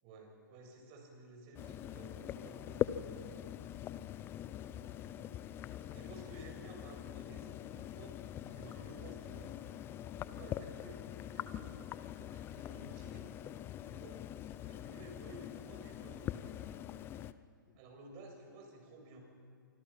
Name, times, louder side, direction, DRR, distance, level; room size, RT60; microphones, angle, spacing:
voice 1, 0.0-3.1 5.7-8.1 8.5-9.5 10.2-11.0 11.3-11.7 12.2-13.3 13.9-14.2 14.7-16.6 17.7-19.2, right 2 dB, 35° right, 2 dB, 6.8 m, -54 dB
sound 1, 1.6-17.3, left 11 dB, 20° left, 0.7 m, -43 dB
voice 2, 3.1-3.4 10.5-10.7 12.5-12.7 14.7-14.9 17.7-17.8, left 8 dB, 35° left, 5 dB, 2.2 m, -64 dB
25.5 x 25.5 x 5.8 m, 2.4 s
figure-of-eight pair, 125°, 11 cm